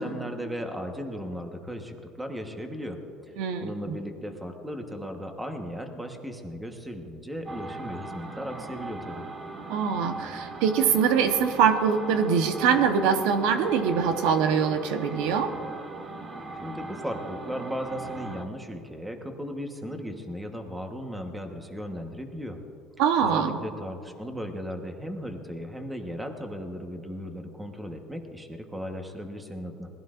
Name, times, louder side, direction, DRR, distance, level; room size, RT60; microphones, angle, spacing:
voice 1, 0.0-3.3 3.6-9.2 16.6-22.6 23.2-29.9, equal, 5° right, 4 dB, 1.2 m, -36 dB
voice 2, 3.4-3.9 9.7-15.5 23.0-23.6, right 7 dB, 80° right, 6 dB, 1.0 m, -23 dB
sound 1, 7.5-18.5, right 2 dB, 25° right, 0.9 m, -39 dB
20.0 x 15.0 x 2.5 m, 2.8 s
cardioid pair, 135°, 0 cm